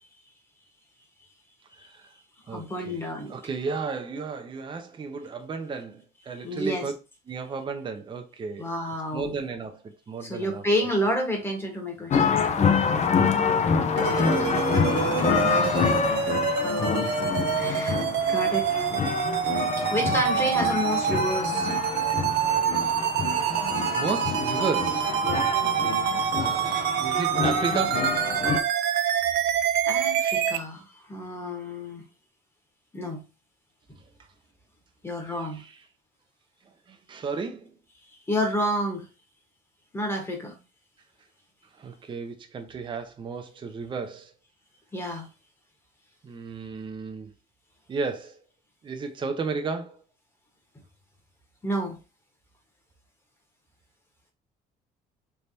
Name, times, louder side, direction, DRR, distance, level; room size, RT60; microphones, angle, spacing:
voice 1, 1.8-2.1 2.5-6.9 7.3-8.7 9.1-10.9 14.1-16.5 17.5-17.9 19.7-20.0 22.8-23.0 23.4-25.2 26.4-28.2 33.9-34.0 35.2-35.8 36.9-37.7 41.7-44.3 46.2-47.3 47.9-48.4 48.8-50.0, right 4 dB, 30° right, 0.6 m, -34 dB
voice 2, 2.5-3.3 6.4-6.9 8.6-9.3 10.2-12.7 14.0-14.3 15.4-15.7 16.6-17.1 17.6-18.0 18.3-18.7 19.8-21.7 25.2-25.5 29.8-32.0 32.9-33.2 35.0-35.6 38.1-39.1 39.9-40.6 44.9-45.3 51.6-52.0, equal, 15° left, 1.3 m, -30 dB
sound 1, 12.1-28.6, left 5 dB, 45° left, 0.6 m, -26 dB
sound 2, 14.0-30.6, right 9 dB, 80° right, 0.5 m, -26 dB
3.4 x 3.2 x 2.7 m
cardioid pair, 110°, 17 cm